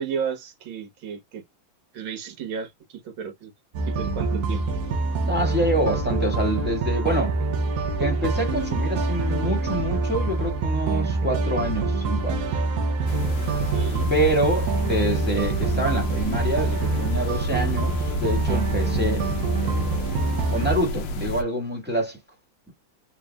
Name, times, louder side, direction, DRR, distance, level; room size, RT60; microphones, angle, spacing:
voice 1, 0.0-1.4 1.9-3.5 3.9-4.6 13.5-14.1, right 7 dB, 80° right, 2.0 m, -33 dB
sound 1, 3.7-20.8, right 3 dB, 60° right, 1.2 m, -25 dB
voice 2, 5.2-7.4 8.0-12.6 14.1-19.3 19.6-19.9 20.5-22.2, right 1 dB, 5° right, 1.5 m, -26 dB
sound 2, 13.1-21.4, left 2 dB, 70° left, 1.4 m, -31 dB
4.1 x 3.2 x 2.3 m
omnidirectional pair, 2.2 m